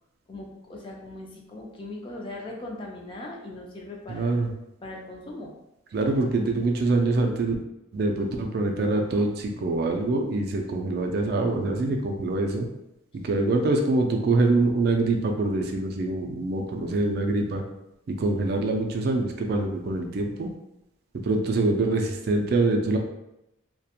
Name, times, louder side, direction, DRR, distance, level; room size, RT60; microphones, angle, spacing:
voice 1, 0.3-4.4 4.8-5.5, left 2 dB, 25° left, -1 dB, 0.3 m, -39 dB
voice 2, 4.1-4.5 5.9-7.6 7.9-12.7 13.2-17.6 18.1-20.5 21.2-23.0, right 2 dB, 50° right, 3 dB, 0.3 m, -24 dB
2.3 x 2.1 x 2.8 m, 0.87 s
head